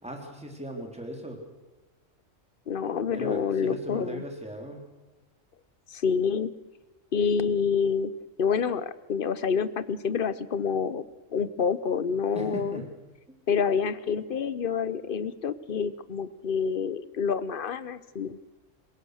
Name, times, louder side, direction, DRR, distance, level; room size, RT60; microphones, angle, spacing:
voice 1, 0.0-1.4 3.1-4.8 12.3-12.9 13.3-13.4, right 1 dB, 5° right, 2 dB, 3.3 m, -38 dB
voice 2, 2.7-4.2 5.9-6.5 7.1-8.1 8.4-11.0 11.3-12.8 13.5-18.4, left 6 dB, 45° left, 15 dB, 0.9 m, -27 dB
27.0 x 17.0 x 6.5 m, 1.2 s
omnidirectional pair, 1.3 m